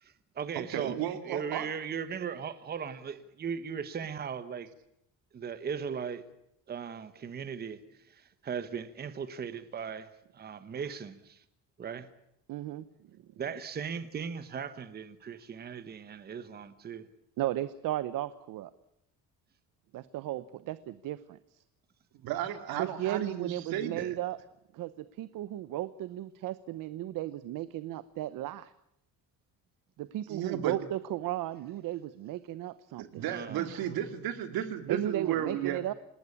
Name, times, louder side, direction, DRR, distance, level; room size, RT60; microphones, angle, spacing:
voice 1, 0.0-4.7 5.3-6.2 6.7-7.8 8.1-11.4 11.8-12.1 13.4-17.1 33.3-33.8, right 6 dB, 25° right, 1.3 m, -38 dB
voice 2, 0.5-1.7 22.2-24.1 30.3-30.8 33.0-35.8, right 10 dB, 80° right, 2.9 m, -34 dB
voice 3, 12.5-12.9 17.4-18.7 19.9-21.6 22.8-24.4 24.7-28.7 30.0-33.2 34.9-35.9, right 13 dB, 65° right, 1.0 m, -35 dB
27.5 x 19.5 x 8.6 m
cardioid pair, 180°, 36 cm